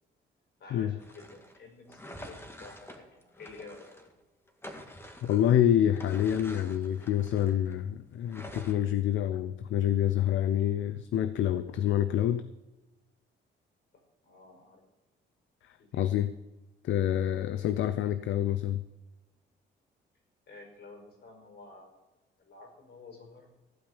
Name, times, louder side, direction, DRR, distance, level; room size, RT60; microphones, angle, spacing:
voice 1, 0.6-4.0 13.9-14.8 15.8-16.1 20.5-22.0 22.4-23.6, left 3 dB, 55° left, 2 dB, 5.6 m, -51 dB
sound 1, 1.0-4.1 4.5-7.8 8.2-8.7, left 1 dB, 10° left, 2.0 m, -47 dB
voice 2, 5.2-12.5 15.6-16.3 16.8-18.8, left 10 dB, 75° left, 12 dB, 0.7 m, -27 dB
15.5 x 5.3 x 9.8 m, 1.0 s
cardioid pair, 90°, 20 cm